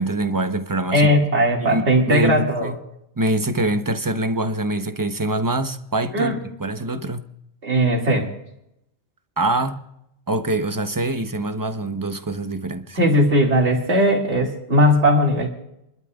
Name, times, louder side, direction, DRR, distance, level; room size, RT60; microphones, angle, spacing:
voice 1, 0.0-1.1 1.6-2.8 3.2-7.2 9.4-9.9 10.3-13.0, right 2 dB, 20° right, 0.7 m, -24 dB
voice 2, 0.9-2.7 6.1-6.4 7.6-8.3 12.9-15.5, equal, 80° right, 2.5 m, -18 dB
28.0 x 12.5 x 2.4 m
omnidirectional pair, 1.1 m